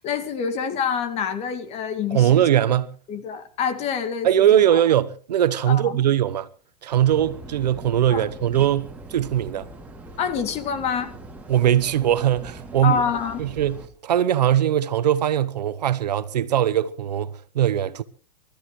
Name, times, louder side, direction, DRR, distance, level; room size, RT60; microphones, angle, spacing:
voice 1, 0.0-2.4 3.1-4.8 5.7-6.0 8.1-8.2 10.2-11.1 12.8-13.4, left 7 dB, 30° left, 2.2 m, -27 dB
voice 2, 2.1-2.9 4.2-6.5 6.8-9.7 11.5-13.0 13.4-18.0, right 11 dB, 75° right, 1.1 m, -21 dB
sound 1, 6.9-13.9, right 1 dB, 5° right, 2.5 m, -41 dB
27.5 x 13.5 x 3.2 m
hypercardioid pair, 130°, 21 cm